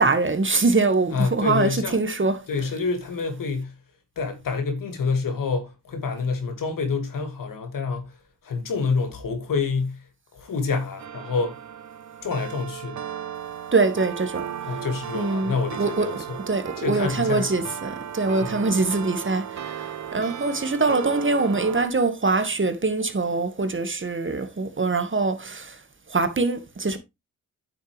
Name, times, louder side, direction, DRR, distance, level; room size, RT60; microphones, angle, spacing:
voice 1, 0.0-2.4 13.7-14.5 15.1-19.8 20.1-25.8 26.1-27.0, right 3 dB, 35° right, 1.9 m, -23 dB
voice 2, 1.1-2.0 2.5-3.7 4.2-8.2 8.4-10.0 10.3-11.6 12.2-13.0 14.7-16.4 16.8-17.7 18.4-18.6, left 4 dB, 70° left, 2.4 m, -27 dB
sound 1, 11.0-21.9, right 9 dB, 55° right, 0.9 m, -35 dB
9.3 x 7.0 x 3.4 m
supercardioid pair, 45°, 34 cm